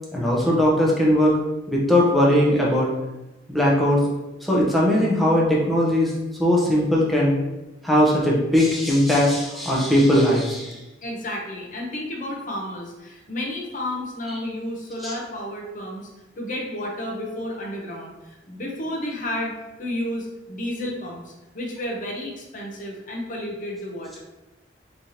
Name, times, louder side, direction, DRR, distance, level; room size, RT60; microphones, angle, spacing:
voice 1, 0.1-1.4 1.7-2.9 3.5-4.0 4.4-6.1 6.4-7.4 7.8-10.8 15.0-15.1, equal, ahead, -5 dB, 0.8 m, -19 dB
voice 2, 11.0-16.1 16.4-19.5 19.8-24.2, left 1 dB, 45° left, -1 dB, 0.8 m, -31 dB
4.2 x 3.2 x 2.8 m, 1.0 s
head